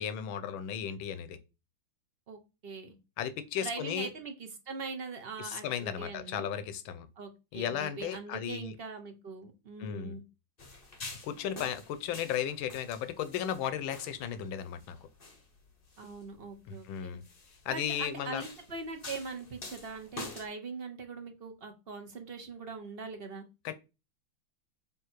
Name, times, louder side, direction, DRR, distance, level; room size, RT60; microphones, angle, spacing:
voice 1, 0.0-1.4 3.2-4.1 5.4-7.1 7.5-8.8 9.8-10.2 11.2-15.0 16.7-17.2 17.6-18.4 23.6-23.7, left 9 dB, 70° left, 1.5 m, -35 dB
voice 2, 2.3-3.0 3.6-6.5 7.2-10.2 16.0-17.2 17.7-23.4, right 4 dB, 40° right, 0.8 m, -42 dB
sound 1, 10.6-20.5, left 3 dB, 35° left, 1.0 m, -48 dB
7.4 x 3.1 x 4.5 m
omnidirectional pair, 2.4 m